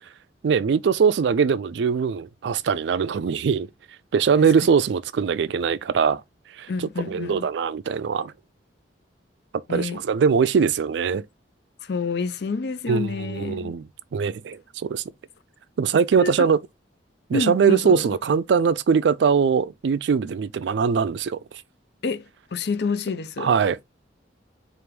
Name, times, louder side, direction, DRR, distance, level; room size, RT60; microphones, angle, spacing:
voice 1, 0.4-3.7 4.1-6.2 6.6-6.7 7.1-8.3 9.5-11.3 12.9-13.9 14.1-15.0 15.8-16.6 17.3-21.4 23.4-23.8, right 6 dB, 70° right, 0.3 m, -21 dB
voice 2, 6.7-7.5 9.7-10.0 11.8-13.8 16.1-16.5 17.3-18.1 22.0-23.5, left 4 dB, 60° left, 0.5 m, -28 dB
4.6 x 2.5 x 3.2 m
head